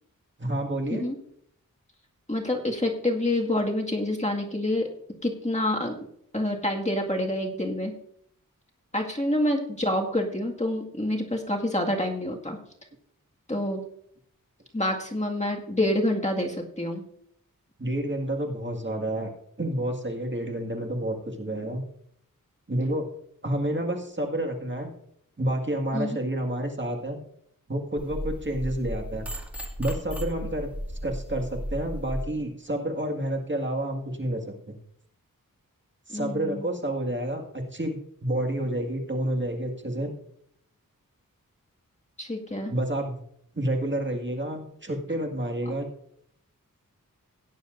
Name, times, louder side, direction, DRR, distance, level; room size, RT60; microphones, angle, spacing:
voice 1, 0.4-1.1 17.8-19.3 19.6-21.8 22.7-23.0 23.4-24.9 25.4-27.2 27.7-29.3 29.8-30.7 31.0-34.8 36.1-40.1 42.7-43.2 43.5-45.9, right 1 dB, 35° right, 2 dB, 2.0 m, -29 dB
voice 2, 2.3-4.9 5.2-6.0 6.3-7.9 8.9-12.6 13.5-13.8 14.7-17.0 25.9-26.2 36.1-36.7 42.2-42.7, left 1 dB, 20° left, 0 dB, 2.0 m, -27 dB
sound 1, 28.0-32.2, equal, 5° right, 2.0 m, -34 dB
17.0 x 9.9 x 2.6 m, 0.69 s
wide cardioid pair, 50°, 34 cm